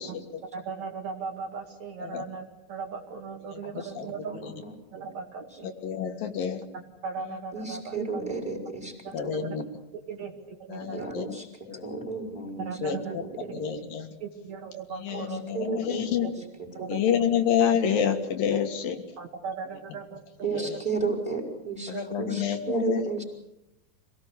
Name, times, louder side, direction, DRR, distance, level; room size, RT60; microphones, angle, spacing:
voice 1, 0.0-0.4 2.0-2.2 3.5-3.6 4.0-4.1 5.6-6.6 9.1-9.7 10.7-11.3 11.7-11.8 12.8-13.2 13.5-14.1 15.0-16.3 16.9-19.0 20.6-20.7 21.9-23.0, left 8 dB, 75° left, 5 dB, 3.5 m, -28 dB
voice 2, 0.5-4.4 4.7-5.7 6.7-8.3 9.0-9.2 9.4-9.5 9.9-11.1 12.6-13.2 13.5-13.6 14.2-15.5 16.8-17.0 19.2-20.6 21.9-22.0, right 5 dB, 55° right, 3 dB, 3.3 m, -38 dB
voice 3, 3.8-5.1 5.5-5.6 7.5-9.0 9.2-9.5 10.8-12.8 13.1-13.5 15.1-16.9 20.4-23.2, right 4 dB, ahead, 1 dB, 4.8 m, -34 dB
26.0 x 18.0 x 8.3 m, 0.88 s
omnidirectional pair, 4.1 m